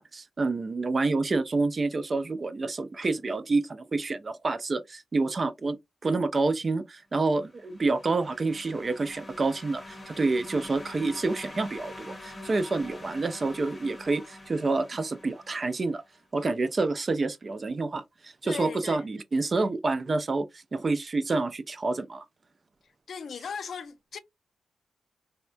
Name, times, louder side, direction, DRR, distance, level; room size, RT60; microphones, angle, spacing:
voice 1, 0.0-5.8 6.0-16.0 16.3-22.3, right 3 dB, 35° right, 0.4 m, -28 dB
sound 1, 7.4-16.0, left 2 dB, 30° left, 0.8 m, -45 dB
voice 2, 18.4-19.0 23.1-24.2, left 6 dB, 65° left, 0.4 m, -37 dB
3.5 x 2.2 x 2.5 m
wide cardioid pair, 115°, 0 cm